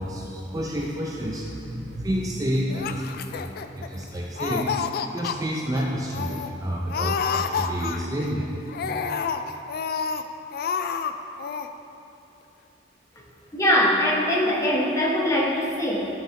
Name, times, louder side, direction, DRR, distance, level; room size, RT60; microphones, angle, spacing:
voice 1, 0.0-4.8 5.1-8.5, equal, 20° right, -2 dB, 0.5 m, -29 dB
Laughter, 2.7-4.0 4.4-5.4 5.8-5.9 6.1-6.5 6.9-8.3 8.7-10.2 10.5-11.1 11.4-11.7, left 6 dB, 55° left, 0.3 m, -29 dB
voice 2, 13.5-16.1, equal, 15° left, -4 dB, 1.0 m, -22 dB
11.5 x 4.7 x 3.2 m, 2.8 s
head